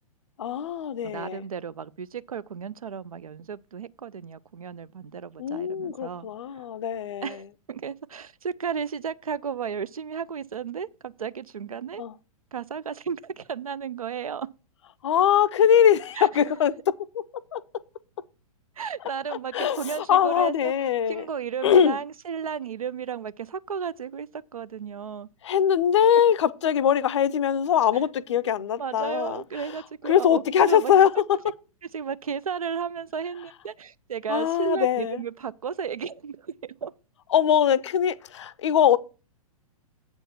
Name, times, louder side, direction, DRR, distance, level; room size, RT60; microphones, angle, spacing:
voice 1, 0.4-1.4 5.4-7.4 12.0-12.1 15.0-16.7 17.1-17.2 17.5-17.6 19.3-21.3 21.6-22.0 25.4-29.8 30.0-31.2 34.3-35.2 37.3-39.0, left 9 dB, 50° left, 0.6 m, -22 dB
voice 2, 1.0-6.3 7.2-12.0 12.5-14.5 16.2-16.3 18.8-20.7 21.1-25.3 28.8-30.9 31.9-36.9, right 6 dB, 70° right, 0.5 m, -33 dB
8.0 x 4.4 x 6.9 m
figure-of-eight pair, 110°, 19 cm